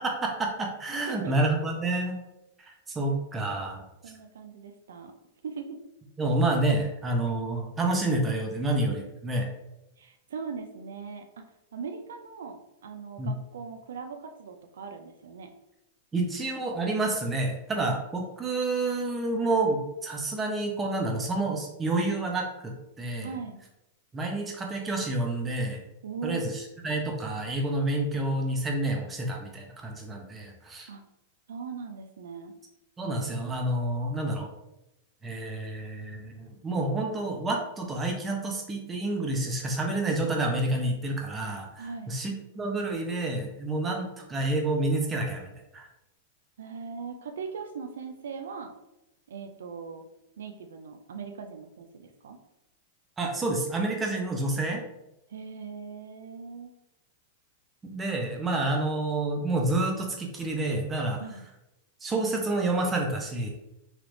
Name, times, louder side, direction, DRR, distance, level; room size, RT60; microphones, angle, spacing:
voice 1, 0.0-2.2 2.7-3.8 6.2-9.5 13.2-13.3 16.1-23.3 24.1-25.8 26.2-30.9 33.0-34.5 35.2-45.9 53.2-54.8 57.8-61.2 62.0-63.5, right 2 dB, 20° right, 1 dB, 0.7 m, -29 dB
voice 2, 4.0-5.1 5.4-5.8 10.0-11.4 11.7-15.5 23.2-23.6 26.0-26.4 30.9-31.0 31.5-32.5 41.8-42.1 46.6-48.7 49.3-50.0 50.4-52.4 55.3-56.7 61.2-61.4, right 5 dB, 85° right, 6 dB, 0.4 m, -40 dB
3.2 x 2.9 x 2.6 m, 0.88 s
hypercardioid pair, 125°, 0 cm